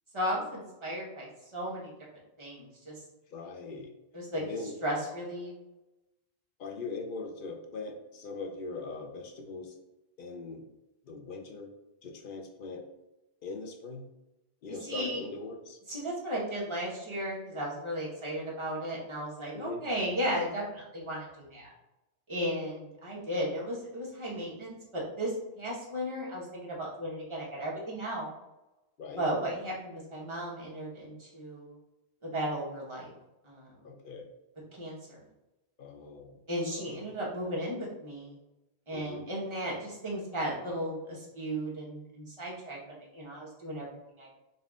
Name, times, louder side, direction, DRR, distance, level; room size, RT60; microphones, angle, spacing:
voice 1, 0.1-1.9 2.4-2.9 4.1-4.4 4.8-5.5 14.7-15.2 15.9-21.7 22.3-28.3 29.2-31.7 32.2-33.1 33.4-33.7 34.7-35.2 36.5-38.3 38.9-43.9 44.2-44.3, equal, 30° right, -4 dB, 1.1 m, -35 dB
voice 2, 3.3-3.9 4.3-4.7 6.6-9.8 10.2-10.6 11.0-11.7 12.0-12.8 13.4-14.0 14.6-15.8 19.5-19.8 29.0-29.2 33.8-34.3 35.8-36.4 36.7-37.0 38.9-39.2, left 3 dB, 60° left, 2 dB, 0.7 m, -41 dB
4.0 x 2.5 x 3.5 m, 0.98 s
omnidirectional pair, 1.1 m